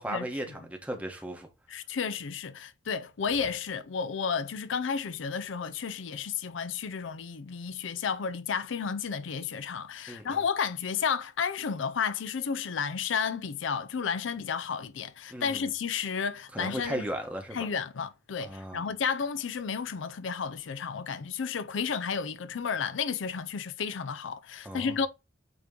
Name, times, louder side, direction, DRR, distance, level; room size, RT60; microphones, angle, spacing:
voice 1, 0.0-1.5 10.1-10.4 15.3-15.7 16.5-17.7 18.4-18.9 24.6-25.0, right 1 dB, 5° right, 1.1 m, -36 dB
voice 2, 1.7-17.1 17.5-25.1, left 6 dB, 80° left, 0.5 m, -32 dB
8.4 x 3.0 x 3.8 m
head